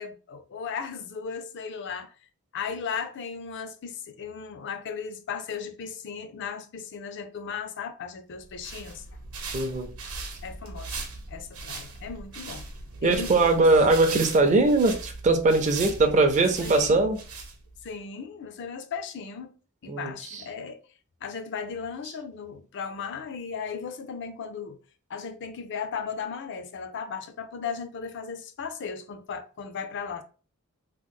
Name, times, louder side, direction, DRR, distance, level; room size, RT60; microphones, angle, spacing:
voice 1, 0.0-2.1 2.5-9.0 10.4-12.7 13.0-13.7 16.6-17.1 17.8-19.5 19.8-20.8 21.2-24.8 25.1-30.2, left 6 dB, 55° left, 0.4 m, -36 dB
sound 1, 8.4-17.9, right 4 dB, 80° right, 0.8 m, -39 dB
voice 2, 9.5-9.9 13.0-17.2 19.9-20.1, right 3 dB, 35° right, 0.5 m, -21 dB
3.0 x 2.0 x 3.6 m
head